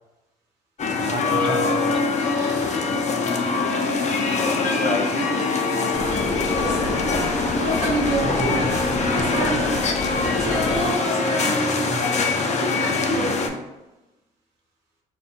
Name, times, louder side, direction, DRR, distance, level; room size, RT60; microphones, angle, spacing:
sound 1, 0.8-13.5, left 4 dB, 35° left, 0.4 m, -23 dB
voice 1, 1.0-2.3 8.2-8.6 9.1-9.7 11.9-12.1, right 3 dB, 25° right, 3 dB, 0.4 m, -32 dB
voice 2, 2.3-2.8 4.7-6.3 6.6-6.8 7.6-8.8 9.1-9.7 10.3-12.0 12.3-13.6, right 2 dB, 75° right, -2 dB, 0.7 m, -29 dB
sound 2, 5.9-10.9, left 1 dB, 55° left, 0.8 m, -28 dB
2.4 x 2.2 x 2.6 m, 1.0 s
hypercardioid pair, 50°, 21 cm